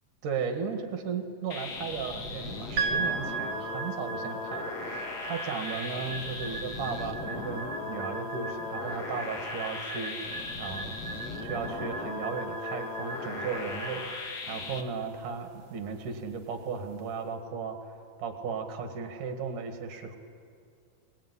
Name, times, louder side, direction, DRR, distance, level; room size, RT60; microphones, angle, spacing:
voice 1, 0.2-17.8 18.2-20.2, right 5 dB, 70° right, 6 dB, 3.3 m, -36 dB
sound 1, 1.5-14.8, left 4 dB, 50° left, 1.3 m, -38 dB
sound 2, 2.8-17.1, right 4 dB, 50° right, 2.5 m, -38 dB
22.5 x 21.0 x 9.8 m, 2.4 s
omnidirectional pair, 3.9 m